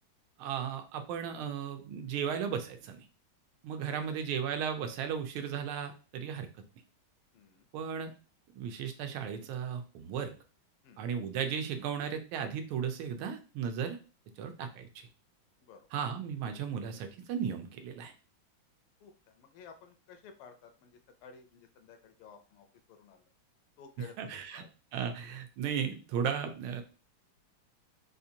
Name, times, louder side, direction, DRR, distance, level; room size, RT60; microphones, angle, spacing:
voice 1, 0.4-3.1 3.6-6.5 7.7-8.1 8.5-10.3 11.0-14.0 14.4-14.9 15.9-18.1 24.2-24.6 24.9-26.8, right 7 dB, 85° right, 7 dB, 1.4 m, -35 dB
voice 2, 3.9-4.2 7.3-7.7 10.8-11.1 15.6-15.9 19.0-23.2 23.8-24.7, left 6 dB, 85° left, 7 dB, 1.5 m, -54 dB
4.3 x 2.5 x 2.7 m, 0.35 s
omnidirectional pair, 2.3 m